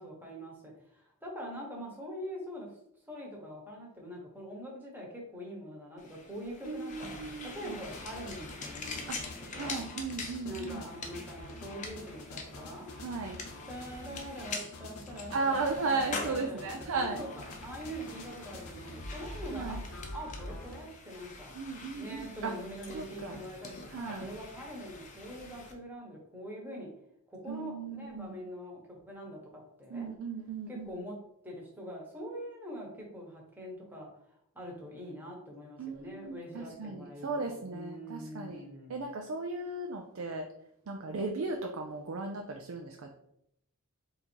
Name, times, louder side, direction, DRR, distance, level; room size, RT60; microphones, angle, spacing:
voice 1, 0.0-2.7 3.1-7.1 7.4-9.8 10.4-12.9 13.7-19.8 20.1-21.6 21.9-26.9 27.3-30.1 30.7-31.1 31.4-34.1 34.5-39.0, equal, 10° right, -2 dB, 1.1 m, -44 dB
sound 1, 6.0-25.7, left 3 dB, 35° left, 0.6 m, -45 dB
voice 2, 6.7-7.7 9.1-9.2 9.5-10.8 13.0-13.4 14.1-14.2 15.3-17.2 19.5-19.8 21.5-22.5 22.9-23.4 23.9-24.3 27.5-28.4 29.9-30.9 35.8-38.6 38.9-40.5 40.9-43.1, right 3 dB, 75° right, 2 dB, 0.5 m, -36 dB
sound 2, 7.9-20.8, left 2 dB, 85° left, 0.8 m, -46 dB
3.8 x 2.8 x 4.4 m, 0.75 s
head